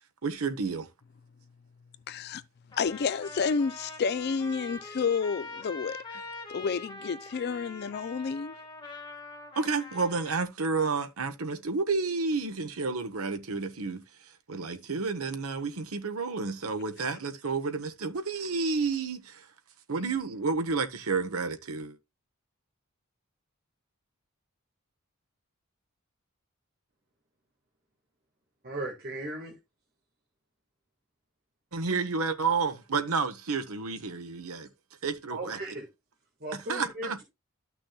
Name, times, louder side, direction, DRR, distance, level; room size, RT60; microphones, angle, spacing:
voice 1, 0.2-0.9 9.6-14.0 14.5-19.5 19.9-22.0 31.7-34.7 35.0-35.6 36.7-37.2, right 4 dB, 75° right, 1.1 m, -30 dB
voice 2, 2.1-2.4 2.8-6.2 6.5-8.5, left 5 dB, 50° left, 0.4 m, -30 dB
Trumpet, 2.7-10.4, left 2 dB, 20° left, 1.7 m, -43 dB
voice 3, 28.6-29.5 35.3-35.9 36.4-37.2, right 2 dB, 45° right, 1.8 m, -37 dB
13.0 x 6.1 x 2.3 m
head